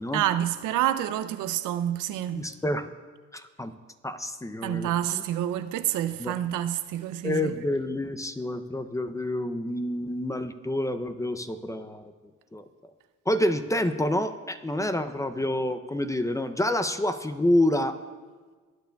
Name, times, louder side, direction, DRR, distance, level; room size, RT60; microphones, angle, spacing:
voice 1, 0.1-2.4 4.6-7.6, right 12 dB, 90° right, 0.6 m, -28 dB
voice 2, 2.3-2.9 3.3-3.7 4.0-5.2 6.2-6.3 7.2-12.0 12.5-12.6 13.3-18.0, left 1 dB, 10° left, 0.5 m, -28 dB
18.5 x 9.2 x 2.3 m
cardioid pair, 90°, 30 cm